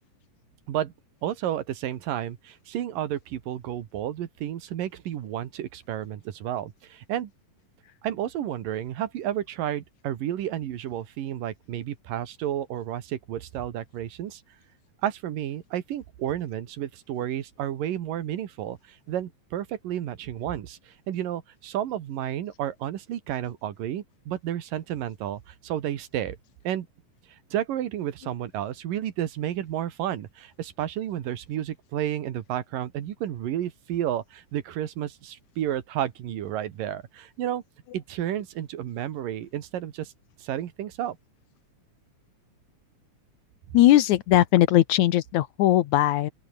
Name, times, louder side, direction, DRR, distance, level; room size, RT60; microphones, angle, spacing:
voice 1, 1.2-7.3 8.0-14.4 15.0-26.4 26.6-26.9 27.5-37.6 37.9-40.1 40.4-41.2, right 11 dB, 85° right, 3.4 m, -31 dB
voice 2, 43.7-46.3, left 14 dB, 70° left, 2.1 m, -19 dB
open air
omnidirectional pair, 3.8 m